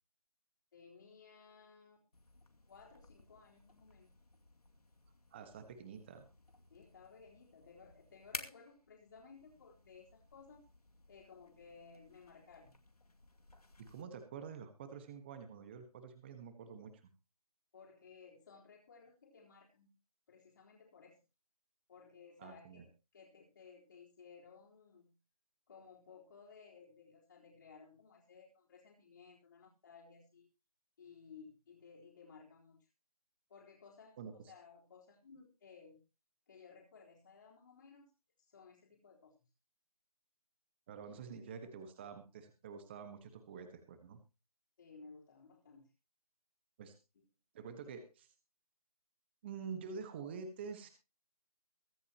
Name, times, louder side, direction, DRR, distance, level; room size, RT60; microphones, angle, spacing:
voice 1, 0.7-2.0 2.7-4.1 6.7-10.7 11.1-12.8 17.7-19.9 20.3-21.2 21.9-25.2 25.7-30.5 31.0-32.9 33.5-36.0 36.5-38.1 38.4-39.4 44.8-45.9 47.1-47.2, left 5 dB, 35° left, -6 dB, 3.7 m, -58 dB
sound 1, 2.1-14.0, left 2 dB, 85° left, 2.4 m, -55 dB
voice 2, 5.3-6.3 13.8-16.9 22.4-22.9 34.2-34.5 40.9-44.2 46.8-47.0 47.5-48.3 49.4-50.9, right 6 dB, 20° right, 9 dB, 1.4 m, -48 dB
23.0 x 8.4 x 3.0 m, 0.30 s
figure-of-eight pair, 160°, 19 cm